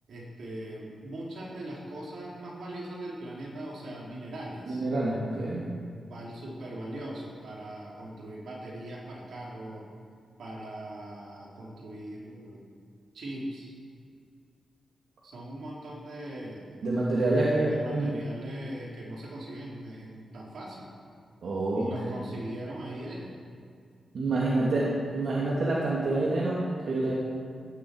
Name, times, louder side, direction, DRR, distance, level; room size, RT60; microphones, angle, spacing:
voice 1, 0.1-4.9 5.8-9.9 10.4-12.7 13.1-13.7 15.2-16.8 17.7-20.9 21.8-23.3, right 1 dB, 80° right, -4 dB, 4.3 m, -40 dB
voice 2, 4.7-5.6 16.8-18.2 21.4-22.2 24.1-27.1, right 2 dB, 60° right, -6 dB, 2.6 m, -27 dB
16.0 x 7.9 x 9.6 m, 2.3 s
wide cardioid pair, 155°, 0 cm